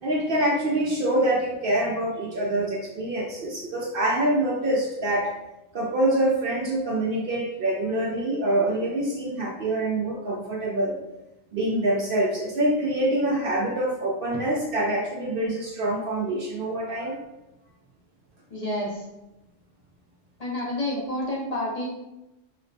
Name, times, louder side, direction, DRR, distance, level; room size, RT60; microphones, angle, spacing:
voice 1, 0.0-5.3 5.7-11.0 11.5-17.2, right 1 dB, 60° right, -2 dB, 0.6 m, -25 dB
voice 2, 18.5-19.1 20.4-21.9, left 1 dB, 40° left, -4 dB, 0.6 m, -29 dB
5.1 x 2.1 x 2.6 m, 0.95 s
omnidirectional pair, 1.3 m